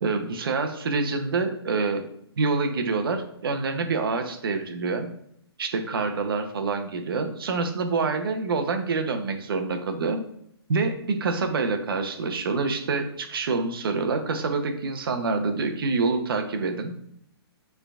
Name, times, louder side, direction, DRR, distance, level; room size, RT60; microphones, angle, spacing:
voice 1, 0.0-2.1 2.4-5.1 5.6-10.2 10.7-17.0, right 4 dB, 60° right, 6 dB, 0.8 m, -26 dB
6.4 x 3.4 x 2.4 m, 0.71 s
hypercardioid pair, 165°, 14 cm